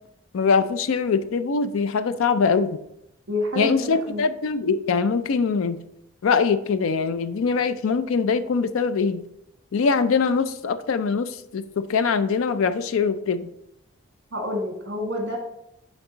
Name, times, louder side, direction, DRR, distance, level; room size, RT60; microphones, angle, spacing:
voice 1, 0.3-2.8 3.6-5.8 6.2-9.2 9.7-13.5, left 5 dB, 75° left, 0.4 m, -23 dB
voice 2, 3.3-4.2 14.3-15.4, left 1 dB, 55° right, 1.4 m, -28 dB
9.3 x 3.5 x 3.9 m
head